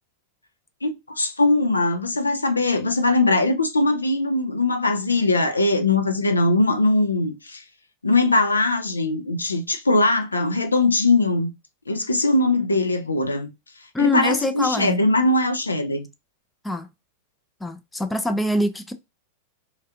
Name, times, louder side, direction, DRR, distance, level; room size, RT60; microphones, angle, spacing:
voice 1, 0.8-7.6 8.0-11.5 11.9-13.5 14.0-16.1, left 2 dB, 80° left, 0.5 m, -21 dB
voice 2, 13.9-15.0 16.6-16.9 17.6-18.9, left 1 dB, 10° left, 0.4 m, -24 dB
3.2 x 2.4 x 2.7 m
figure-of-eight pair, 90°, 0 cm